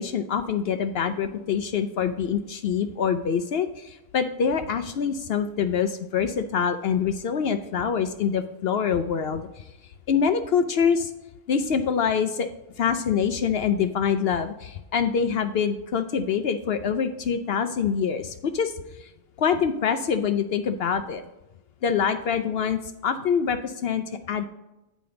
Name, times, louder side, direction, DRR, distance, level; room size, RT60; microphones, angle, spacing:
voice 1, 0.0-9.7 10.1-11.1 11.5-12.5 12.8-18.7 19.0-19.1 19.4-21.2 21.8-24.5, left 7 dB, 65° left, 9 dB, 0.6 m, -25 dB
8.6 x 5.1 x 3.8 m, 0.95 s
omnidirectional pair, 1.4 m